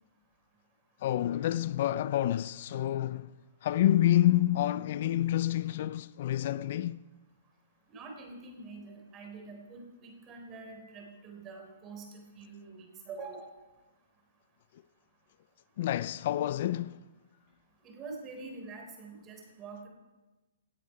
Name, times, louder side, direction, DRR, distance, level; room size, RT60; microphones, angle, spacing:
voice 1, 1.0-3.3 3.6-7.0 15.8-17.0, left 13 dB, 50° left, 0.3 m, -28 dB
voice 2, 7.9-13.5 17.8-19.9, right 3 dB, 25° right, 3.5 m, -45 dB
17.5 x 8.4 x 5.8 m
hypercardioid pair, 150°, 0 cm